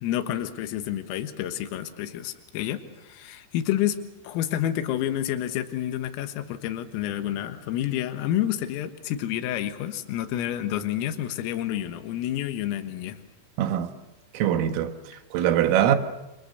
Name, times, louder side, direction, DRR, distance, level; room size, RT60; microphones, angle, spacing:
voice 1, 0.0-4.0 4.2-13.2, left 12 dB, 85° left, 4.1 m, -29 dB
voice 2, 13.6-13.9 14.3-16.0, right 10 dB, 80° right, 4.1 m, -23 dB
28.5 x 27.0 x 6.7 m
omnidirectional pair, 5.9 m